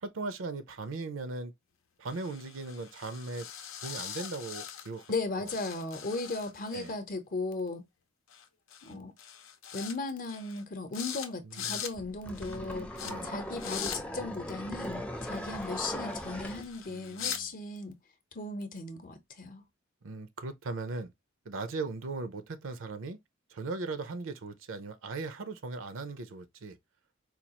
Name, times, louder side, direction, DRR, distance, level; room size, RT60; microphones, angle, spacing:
voice 1, 0.0-1.5 2.0-3.5 3.8-5.0 5.4-5.5 6.7-6.9 11.4-11.8 13.0-13.3 16.9-17.5 20.0-21.1 21.5-23.2 23.5-26.8, right 3 dB, 70° right, 0.6 m, -38 dB
sound 1, 2.1-5.2 5.5-6.9 8.3-8.4 8.7-8.9 9.2-10.0 10.3-10.6 10.9-11.3 11.5-11.9 12.3-12.6 13.0-13.1 13.6-14.0 15.2-17.4, left 8 dB, 80° left, 0.7 m, -42 dB
voice 2, 5.1-7.8 8.8-9.1 9.7-12.9 13.2-18.0 18.3-19.6, left 3 dB, 45° left, 0.8 m, -36 dB
sound 2, 12.0-16.7, equal, 5° left, 0.4 m, -39 dB
4.4 x 2.4 x 2.8 m
head